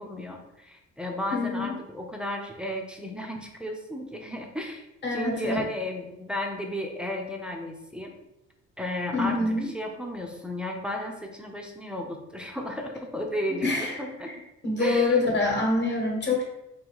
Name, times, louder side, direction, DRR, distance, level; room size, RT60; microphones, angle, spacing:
voice 1, 0.0-8.1 8.8-14.3 14.8-15.2, left 1 dB, 5° right, 0 dB, 0.7 m, -33 dB
voice 2, 1.3-1.7 5.0-5.6 9.1-9.7 13.6-14.0 14.6-16.4, left 2 dB, 35° left, 0 dB, 1.4 m, -25 dB
3.9 x 2.8 x 4.7 m, 0.90 s
cardioid pair, 90°, 30 cm